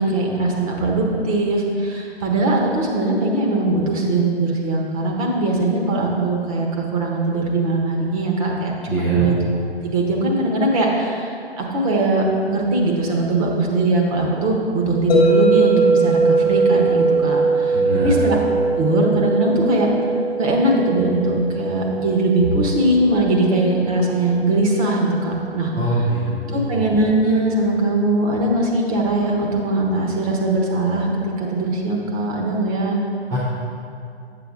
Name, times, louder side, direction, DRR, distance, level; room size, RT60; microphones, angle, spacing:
voice 1, 0.0-9.4 9.8-18.4 18.8-19.9 20.4-25.7 26.5-31.1 31.4-33.0, right 2 dB, 35° right, -1 dB, 1.4 m, -20 dB
voice 2, 8.9-9.3 17.7-18.2 25.7-26.2 26.5-26.8 33.3-33.4, equal, 10° right, -7 dB, 0.5 m, -23 dB
sound 1, 15.1-25.2, right 3 dB, 15° left, 0.9 m, -21 dB
8.1 x 7.2 x 3.9 m, 2.4 s
figure-of-eight pair, 135°, 33 cm